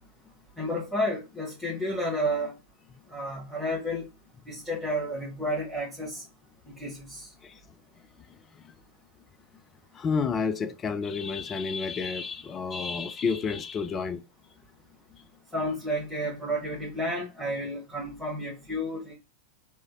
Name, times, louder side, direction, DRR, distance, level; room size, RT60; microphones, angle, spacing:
voice 1, 0.6-2.5 3.1-4.1 4.5-6.2 6.8-7.3 15.5-19.1, equal, 5° left, 1.5 m, -31 dB
voice 2, 9.9-14.2, left 5 dB, 25° left, 0.4 m, -30 dB
3.4 x 3.1 x 2.6 m
figure-of-eight pair, 90°, 0 cm